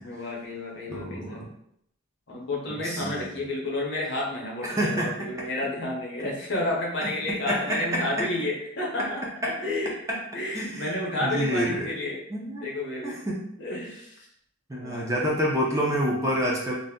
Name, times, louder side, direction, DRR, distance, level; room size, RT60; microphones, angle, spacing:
voice 1, 0.0-1.5 2.3-12.2 12.6-13.2 13.6-14.3 14.7-15.3 15.6-15.8, left 2 dB, 55° left, -2 dB, 0.7 m, -31 dB
voice 2, 0.9-1.5 2.7-3.3 4.6-5.3 7.0-8.3 9.0-9.1 9.4-9.5 10.1-10.2 10.5-11.9 12.3-12.7 13.0-13.5 14.7-16.7, equal, 15° right, -3 dB, 0.4 m, -28 dB
2.6 x 2.0 x 3.5 m, 0.72 s
head